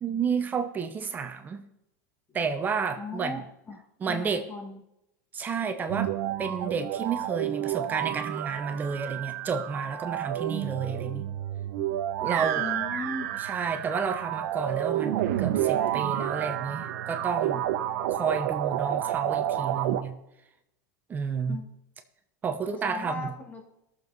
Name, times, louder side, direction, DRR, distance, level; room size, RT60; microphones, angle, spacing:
voice 1, 0.0-1.7 2.3-3.4 4.0-4.4 5.3-6.1 6.4-11.3 12.2-12.6 13.4-17.7 18.1-20.1 21.1-21.6 22.4-23.3, right 6 dB, 20° right, 7 dB, 0.9 m, -31 dB
voice 2, 3.0-3.4 3.7-4.8 12.6-13.5 21.5-21.7 22.7-23.6, left 3 dB, 20° left, 3 dB, 1.6 m, -37 dB
sound 1, 5.9-20.0, right 12 dB, 65° right, 1.1 m, -30 dB
18.0 x 7.1 x 4.0 m, 0.83 s
supercardioid pair, 150°, 9 cm